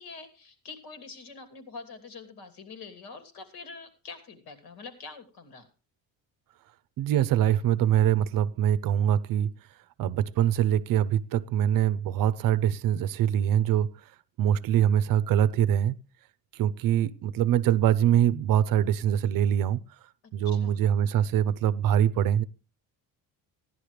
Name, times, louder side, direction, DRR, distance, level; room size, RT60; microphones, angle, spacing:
voice 1, 0.0-5.7 20.4-20.9, left 4 dB, 85° left, 3.0 m, -45 dB
voice 2, 7.0-9.5 10.0-13.9 14.4-15.9 16.6-19.8 20.3-22.4, right 10 dB, 60° right, 0.7 m, -23 dB
16.5 x 11.0 x 3.3 m
cardioid pair, 155°, 39 cm